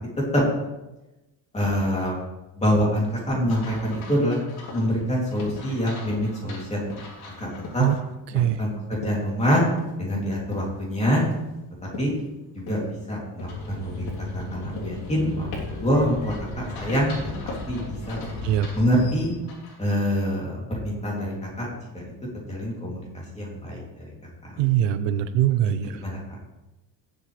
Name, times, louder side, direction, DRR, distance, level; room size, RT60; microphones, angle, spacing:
voice 1, 1.5-2.1 2.5-4.4 4.7-6.8 7.4-7.5 7.7-7.8 8.3-9.6 10.0-11.2 12.0-12.1 12.5-18.2 18.7-19.3 19.8-22.0 22.5-24.1 24.4-24.5 25.8-26.4, equal, 15° left, -4 dB, 3.1 m, -26 dB
sound 1, 3.5-8.0 8.5-8.6 13.5-19.8, left 2 dB, 55° left, 4.1 m, -46 dB
sound 2, 3.8-4.1 4.7-4.9 5.4-5.7 6.1-6.5 6.9-7.3 7.6-8.0 8.3-8.6 9.0-9.3 9.8-10.0 10.5-10.8 11.2-11.6 11.9-12.2 12.7-13.0 13.4-13.8 14.1-14.4 14.8-15.2 15.5-15.9 16.2-16.5 16.9-17.2 17.5-17.8 18.2-18.5, left 3 dB, 80° left, 3.5 m, -39 dB
sound 3, 13.4-19.3, left 2 dB, 40° left, 3.8 m, -36 dB
voice 2, 24.6-26.0, right 11 dB, 75° right, 11 dB, 0.8 m, -22 dB
18.5 x 8.0 x 3.4 m, 1.0 s
cardioid pair, 170°, 44 cm